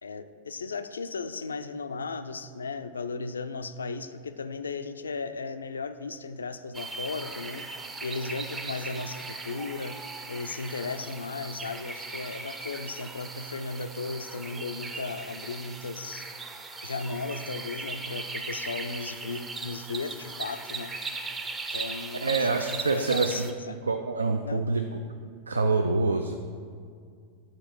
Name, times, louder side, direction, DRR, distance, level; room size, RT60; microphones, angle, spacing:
voice 1, 0.0-7.6 8.0-16.3 16.8-20.9 21.7-23.8 24.4-24.6, left 4 dB, 75° left, 10 dB, 0.3 m, -36 dB
sound 1, 6.7-23.5, right 3 dB, 15° right, 0.5 m, -38 dB
voice 2, 22.2-23.5 23.9-24.8 25.5-26.4, right 3 dB, 75° right, 6 dB, 0.3 m, -26 dB
8.8 x 4.4 x 4.5 m, 2.2 s
figure-of-eight pair, 90°, 0 cm